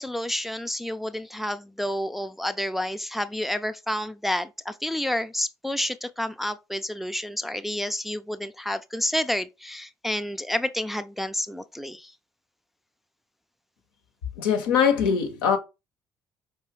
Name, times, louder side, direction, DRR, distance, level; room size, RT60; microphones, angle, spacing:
voice 1, 0.0-12.1, left 1 dB, ahead, 0.4 m, -29 dB
voice 2, 14.4-15.6, left 7 dB, 80° left, 0.7 m, -22 dB
4.7 x 2.9 x 3.1 m
hypercardioid pair, 45°, 12 cm